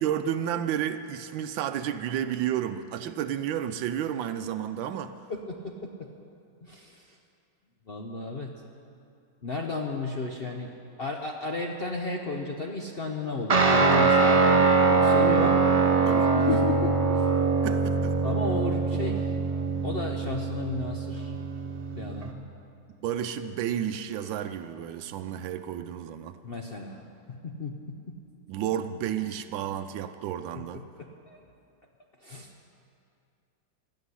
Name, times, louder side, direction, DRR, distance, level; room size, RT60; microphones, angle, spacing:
voice 1, 0.0-5.1 16.1-16.3 17.6-18.2 23.0-26.4 28.5-30.8, right 10 dB, 85° right, 9 dB, 1.3 m, -31 dB
voice 2, 6.6-7.0 7.9-8.5 9.4-10.7 11.0-15.6 16.0-17.0 18.2-19.3 19.8-21.3 21.9-22.3 26.4-27.0 27.3-28.0 30.5-30.6 31.0-31.4 32.2-32.5, left 3 dB, 55° left, 2 dB, 0.6 m, -33 dB
Guitar, 13.5-22.3, right 4 dB, 50° right, 0.4 m, -23 dB
15.5 x 7.2 x 9.8 m, 2.5 s
omnidirectional pair, 2.1 m